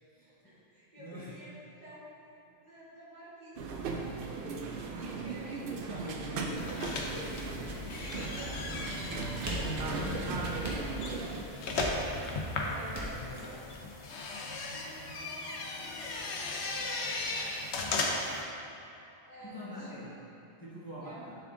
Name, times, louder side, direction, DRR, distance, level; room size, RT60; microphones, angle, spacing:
voice 1, 0.2-1.5 1.8-2.3 2.6-4.5 4.9-6.4 8.1-8.5 9.4-11.8 12.5-13.1 13.4-13.7 14.7-18.6 19.3-20.1 21.0-21.2, right 1 dB, 40° right, -9 dB, 1.5 m, -51 dB
voice 2, 1.0-1.4 5.9-8.4 8.9-9.4 9.7-10.5 12.0-13.7 19.4-20.1 20.6-21.4, left 1 dB, 20° left, -9 dB, 0.9 m, -45 dB
sound 1, 3.6-11.4, right 4 dB, 60° right, 0.7 m, -37 dB
sound 2, 6.5-18.4, left 3 dB, 85° left, 1.0 m, -37 dB
sound 3, 9.5-10.2 10.6-11.3 11.8-12.4 12.9-13.4, equal, 15° right, 0.9 m, -39 dB
6.9 x 4.4 x 3.7 m, 2.9 s
omnidirectional pair, 1.1 m